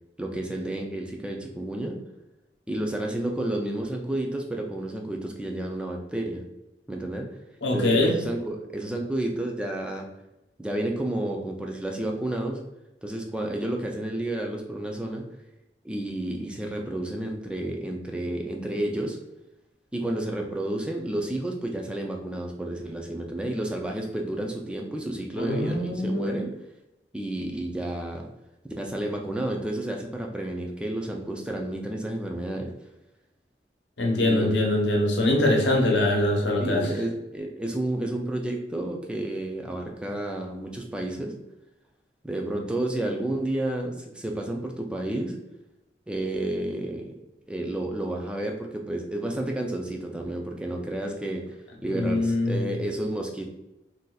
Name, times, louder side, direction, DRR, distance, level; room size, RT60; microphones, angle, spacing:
voice 1, 0.2-1.9 2.7-6.4 6.9-7.3 7.7-10.1 10.6-12.6 13.0-15.2 15.8-19.2 19.9-26.5 27.1-28.2 28.6-32.7 34.2-34.6 36.6-41.3 42.2-45.3 46.1-47.1 47.5-51.4 51.8-53.5, right 1 dB, 5° right, 1 dB, 0.3 m, -31 dB
voice 2, 7.6-8.1 25.4-26.4 34.0-36.9 51.8-52.7, left 1 dB, 75° left, 0 dB, 0.8 m, -23 dB
2.6 x 2.3 x 3.9 m, 0.94 s
head